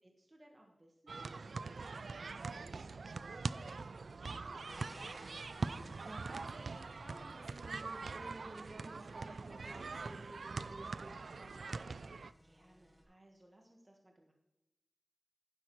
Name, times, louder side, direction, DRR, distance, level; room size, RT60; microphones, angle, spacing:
voice 1, 0.0-5.2 12.0-14.3, right 1 dB, 35° right, 1 dB, 1.5 m, -64 dB
sound 1, 1.1-12.3, right 4 dB, 90° right, 0.3 m, -43 dB
sound 2, 4.7-13.0, equal, 15° right, 2.5 m, -61 dB
voice 2, 5.8-11.6, right 1 dB, 60° right, 2 dB, 2.1 m, -53 dB
11.5 x 9.9 x 3.1 m, 0.97 s
wide cardioid pair, 60°, 0 cm